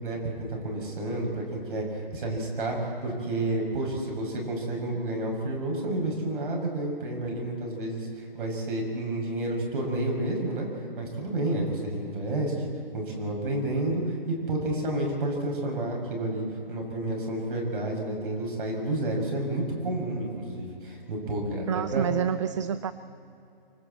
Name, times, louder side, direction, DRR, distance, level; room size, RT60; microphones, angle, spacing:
voice 1, 0.0-10.7 11.0-22.1, right 1 dB, 60° right, 0 dB, 6.7 m, -30 dB
voice 2, 21.7-22.9, right 8 dB, 30° right, 14 dB, 0.4 m, -28 dB
28.0 x 25.0 x 4.3 m, 2.8 s
figure-of-eight pair, 140°, 30 cm